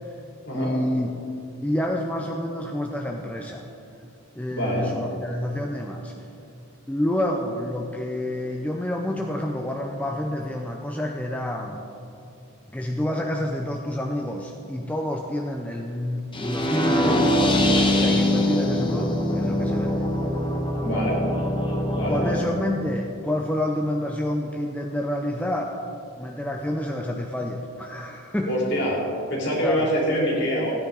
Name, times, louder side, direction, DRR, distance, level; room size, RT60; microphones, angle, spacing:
voice 1, 0.5-1.1 1.6-3.7 4.4-6.1 6.9-11.9 12.7-17.6 18.0-20.0 22.1-25.8 26.2-28.6 29.6-29.9, left 1 dB, 5° left, 1 dB, 0.4 m, -28 dB
voice 2, 4.5-4.9 20.8-21.2 21.9-22.4 28.5-29.0 29.3-30.7, equal, 50° left, -3 dB, 2.9 m, -25 dB
sound 1, 16.3-22.3, left 1 dB, 20° left, 1.0 m, -23 dB
15.5 x 9.9 x 3.9 m, 2.7 s
head